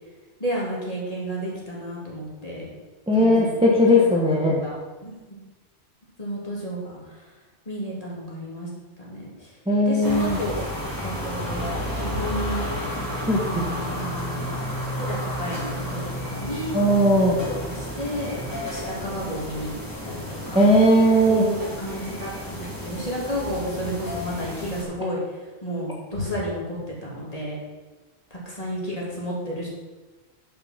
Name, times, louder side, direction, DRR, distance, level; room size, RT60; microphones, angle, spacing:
voice 1, 0.4-2.7 3.2-5.4 6.2-7.3 7.6-8.7 9.0-9.5 9.9-10.6 11.0-11.7 12.0-12.7 13.4-14.5 15.0-16.8 17.2-19.7 20.0-20.6 21.3-27.6 28.3-29.7, equal, 35° left, -5 dB, 2.9 m, -32 dB
voice 2, 3.1-4.6 9.7-10.4 13.3-13.6 16.7-17.4 20.5-21.4, equal, 5° right, -3 dB, 1.2 m, -18 dB
sound 1, 10.0-24.8, equal, 20° left, 2.4 m, -32 dB
10.5 x 5.9 x 5.8 m, 1.2 s
omnidirectional pair, 1.1 m